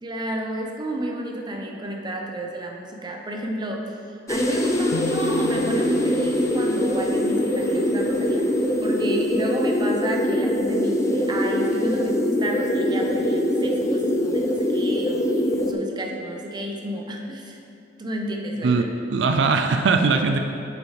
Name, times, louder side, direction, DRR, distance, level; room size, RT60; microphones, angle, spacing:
voice 1, 0.0-8.4 8.8-17.6 18.0-18.9, right 1 dB, 25° right, 1 dB, 0.7 m, -31 dB
sound 1, 4.3-15.7, left 1 dB, 15° left, 0.5 m, -23 dB
sound 2, 4.9-8.9, left 3 dB, 75° left, 0.3 m, -38 dB
voice 2, 18.6-20.4, right 4 dB, 75° right, 6 dB, 0.4 m, -20 dB
8.2 x 6.8 x 3.2 m, 2.7 s
head